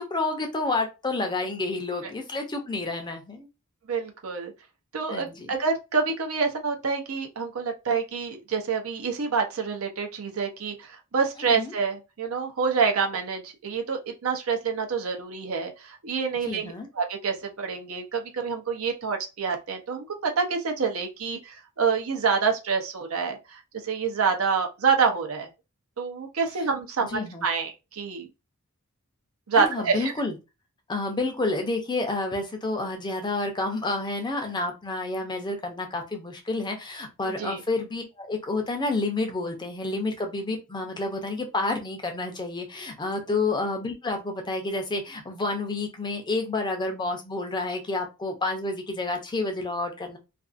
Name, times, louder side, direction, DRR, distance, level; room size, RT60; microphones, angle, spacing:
voice 1, 0.0-3.5 5.1-5.5 11.5-11.7 16.4-16.9 27.1-27.4 29.6-30.3 30.9-50.2, left 2 dB, 20° left, 0.5 m, -29 dB
voice 2, 3.9-4.5 4.9-25.5 26.0-28.3 29.5-30.1 37.3-37.6 43.3-43.5, right 5 dB, 75° right, 0.7 m, -27 dB
2.5 x 2.4 x 2.4 m
head